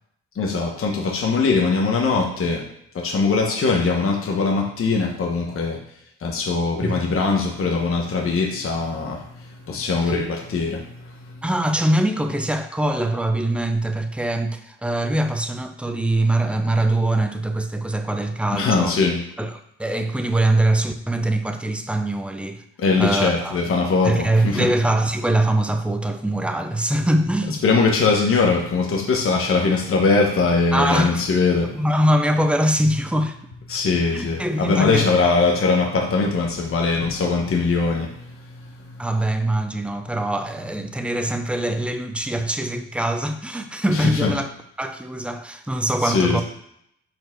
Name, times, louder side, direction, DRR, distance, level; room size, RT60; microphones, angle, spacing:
voice 1, 0.3-2.6 2.9-5.8 6.2-11.4 18.5-19.2 22.8-24.7 27.6-31.8 33.7-39.1 43.9-44.3 46.0-46.4, left 4 dB, 45° left, 0 dB, 1.2 m, -21 dB
voice 2, 6.8-7.1 10.0-10.2 11.4-19.0 19.4-22.6 23.0-23.6 24.0-27.6 30.7-31.2 31.6-33.3 34.1-35.3 39.0-44.5 44.8-46.4, right 1 dB, 5° right, 7 dB, 0.6 m, -23 dB
5.1 x 4.4 x 4.6 m, 0.72 s
cardioid pair, 90°, 30 cm